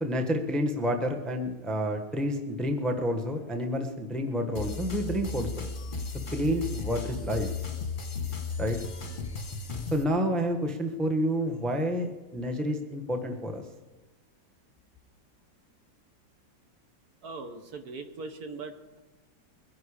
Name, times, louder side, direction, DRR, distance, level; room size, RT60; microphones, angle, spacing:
voice 1, 0.0-5.6 6.3-7.5 8.6-8.8 9.9-13.6, equal, ahead, 4 dB, 0.9 m, -29 dB
sound 1, 4.6-10.0, left 4 dB, 30° left, 1.3 m, -35 dB
voice 2, 17.2-19.0, right 3 dB, 60° right, 7 dB, 1.4 m, -40 dB
22.5 x 10.5 x 5.0 m, 1.2 s
omnidirectional pair, 2.0 m